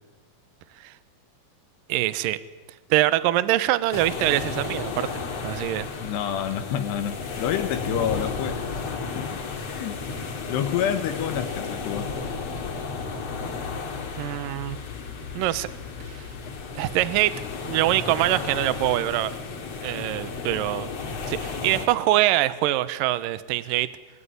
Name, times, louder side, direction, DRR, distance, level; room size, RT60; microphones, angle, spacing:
voice 1, 1.9-2.4 2.9-5.1 5.4-5.9 14.2-14.8 15.3-15.7 16.1-16.2 16.8-17.3 17.6-19.3 19.8-20.9 21.3-23.9, right 15 dB, 70° right, 15 dB, 2.4 m, -24 dB
sound 1, 3.9-21.9, left 4 dB, 45° left, 3.1 m, -33 dB
voice 2, 6.0-8.7 9.2-10.0 10.5-12.1, left 9 dB, 85° left, 7 dB, 3.5 m, -28 dB
24.0 x 23.5 x 9.8 m, 1.2 s
omnidirectional pair, 4.7 m